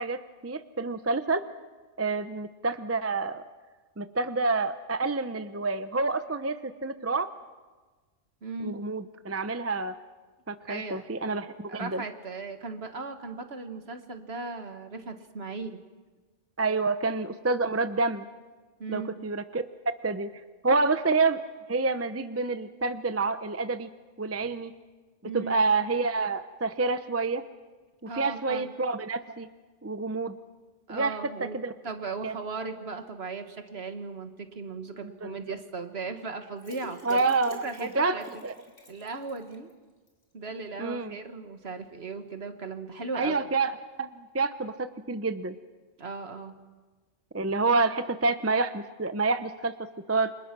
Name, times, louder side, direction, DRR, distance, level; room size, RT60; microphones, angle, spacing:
voice 1, 0.0-1.4 2.0-3.4 4.0-7.3 8.6-9.9 10.5-12.0 16.6-18.3 18.9-19.6 20.0-20.3 20.6-21.4 21.7-23.9 24.2-24.7 25.2-27.4 28.0-29.5 29.8-30.4 30.9-31.7 32.2-32.3 35.0-35.5 37.0-38.2 38.4-38.5 40.8-41.1 43.1-43.7 44.0-45.5 47.3-50.3, right 3 dB, 15° right, 11 dB, 0.7 m, -28 dB
voice 2, 8.4-8.8 10.7-11.1 11.7-15.8 18.8-19.2 25.2-25.5 28.1-28.7 30.9-37.2 37.6-38.3 38.9-39.7 40.3-43.4 46.0-46.6, right 4 dB, 55° right, 7 dB, 1.9 m, -37 dB
sound 1, 36.6-39.7 40.1-40.2 40.5-40.6, left 3 dB, 60° left, 3.6 m, -49 dB
29.0 x 25.5 x 6.1 m, 1.3 s
omnidirectional pair, 1.3 m